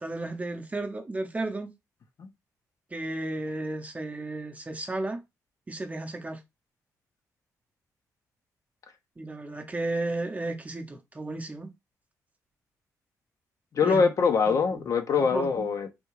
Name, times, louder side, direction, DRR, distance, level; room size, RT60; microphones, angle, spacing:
voice 1, 0.0-1.7 2.9-5.2 5.7-6.4 9.2-11.7 13.8-14.0 14.5-14.8 15.2-15.7, right 2 dB, 20° right, 0.7 m, -33 dB
voice 2, 13.7-15.9, left 5 dB, 55° left, 0.6 m, -23 dB
3.4 x 2.3 x 3.0 m
cardioid pair, 80°, 7 cm